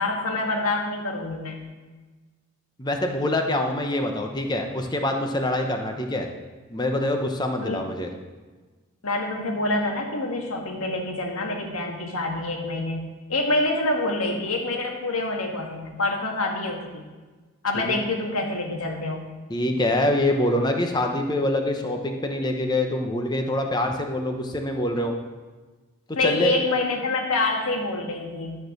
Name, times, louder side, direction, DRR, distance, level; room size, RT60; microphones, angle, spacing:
voice 1, 0.0-1.6 7.6-7.9 9.0-13.0 13.3-17.0 17.6-19.3 26.2-28.6, left 2 dB, 80° left, 1 dB, 1.6 m, -26 dB
voice 2, 2.8-6.3 6.7-8.1 17.9-18.0 19.5-25.1 26.2-26.6, left 1 dB, 20° left, 4 dB, 0.9 m, -25 dB
12.5 x 4.5 x 6.5 m, 1.3 s
head